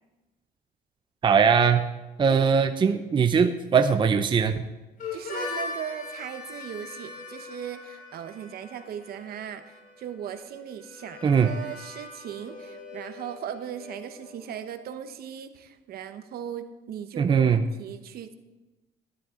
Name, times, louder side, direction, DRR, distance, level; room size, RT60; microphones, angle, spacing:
voice 1, 1.2-1.8 2.2-4.6 11.2-11.5 17.2-17.6, right 6 dB, 30° right, 8 dB, 0.6 m, -21 dB
Harmonica, 5.0-14.6, left 3 dB, 55° left, 4.0 m, -41 dB
voice 2, 5.1-18.3, right 9 dB, 65° right, 9 dB, 1.1 m, -38 dB
12.5 x 12.0 x 3.8 m, 1.1 s
cardioid pair, 110°, 17 cm